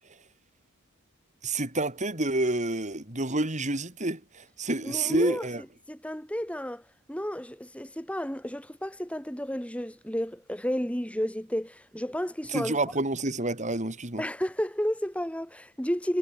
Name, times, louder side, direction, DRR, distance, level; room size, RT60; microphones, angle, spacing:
voice 1, 1.4-5.6 12.5-14.2, right 2 dB, 35° right, 3.7 m, -28 dB
voice 2, 4.8-5.5 5.9-6.8 7.1-12.8 14.2-16.2, equal, 5° left, 3.8 m, -32 dB
head